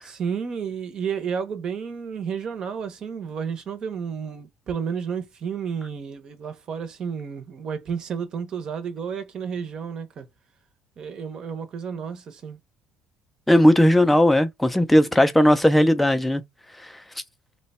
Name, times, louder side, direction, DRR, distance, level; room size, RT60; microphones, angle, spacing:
voice 1, 0.0-10.3 11.0-12.6, right 7 dB, 35° right, 0.7 m, -31 dB
voice 2, 13.5-16.4, left 1 dB, 5° left, 0.4 m, -17 dB
2.9 x 2.2 x 4.0 m
cardioid pair, 165°, 2 cm